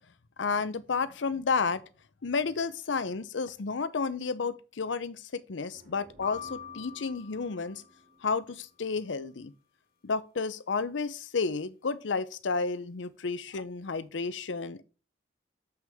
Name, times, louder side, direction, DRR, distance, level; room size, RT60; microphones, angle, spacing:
voice 1, 0.4-1.8 2.2-7.8 8.2-9.5 10.0-14.8, left 4 dB, 80° left, 0.6 m, -31 dB
sound 1, 5.7-9.4, right 3 dB, 60° right, 4.1 m, -57 dB
sound 2, 6.2-8.4, left 9 dB, 55° left, 1.4 m, -44 dB
7.3 x 6.1 x 3.6 m
head